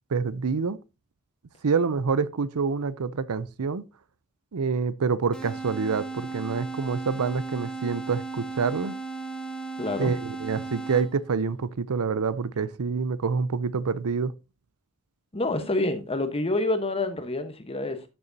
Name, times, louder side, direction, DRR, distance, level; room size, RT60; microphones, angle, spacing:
voice 1, 0.1-0.8 1.6-3.8 4.5-9.0 10.0-14.3, right 5 dB, 85° right, 0.6 m, -27 dB
sound 1, 5.3-11.4, right 4 dB, 5° left, 1.1 m, -36 dB
voice 2, 9.8-10.1 15.3-18.0, left 2 dB, 25° left, 1.1 m, -27 dB
12.0 x 6.9 x 2.7 m
head